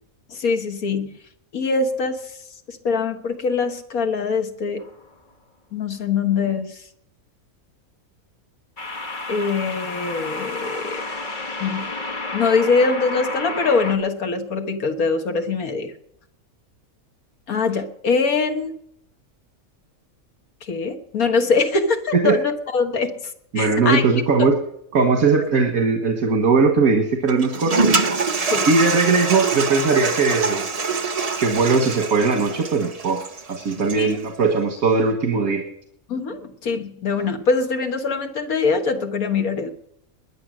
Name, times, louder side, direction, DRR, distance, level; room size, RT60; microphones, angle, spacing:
voice 1, 0.3-1.1 1.5-2.2 2.7-4.8 5.7-6.8 9.3-11.0 11.6-11.9 12.3-15.9 17.5-18.7 20.6-23.2 23.6-24.1 24.4-24.5 28.5-28.7 33.8-34.2 36.1-39.7, left 4 dB, 80° left, 5 dB, 1.9 m, -23 dB
sound 1, 4.8-5.1 8.8-14.0, left 2 dB, 35° left, 1.6 m, -31 dB
voice 2, 23.5-24.5 24.9-27.9 28.7-30.6 31.4-33.2 33.5-35.6, right 4 dB, 75° right, 3 dB, 2.0 m, -19 dB
Toilet flush, 27.3-34.2, right 4 dB, 30° right, 0.9 m, -25 dB
21.0 x 9.8 x 6.4 m, 0.73 s
omnidirectional pair, 1.5 m